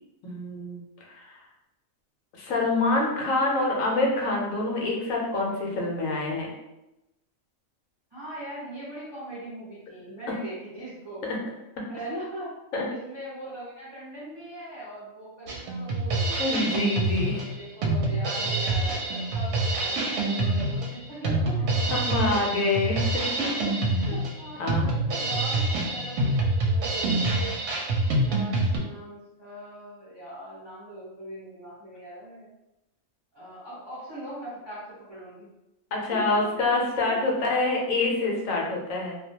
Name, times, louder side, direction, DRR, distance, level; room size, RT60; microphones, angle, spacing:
voice 1, 0.2-0.8 1.1-1.4 2.4-6.5 11.2-11.4 12.7-12.8 16.4-17.5 21.9-23.3 24.6-24.9 35.9-39.2, left 2 dB, 75° left, -1 dB, 1.0 m, -26 dB
voice 2, 8.1-11.2 11.9-12.5 12.9-16.4 17.2-22.4 23.2-23.5 23.9-27.5 28.2-32.5 33.3-35.5 36.1-36.3 37.1-37.2, right 1 dB, 30° right, -8 dB, 0.5 m, -40 dB
Drum kit, 15.5-28.8, right 2 dB, 70° right, 0.8 m, -26 dB
2.4 x 2.1 x 2.7 m, 0.94 s
omnidirectional pair, 1.4 m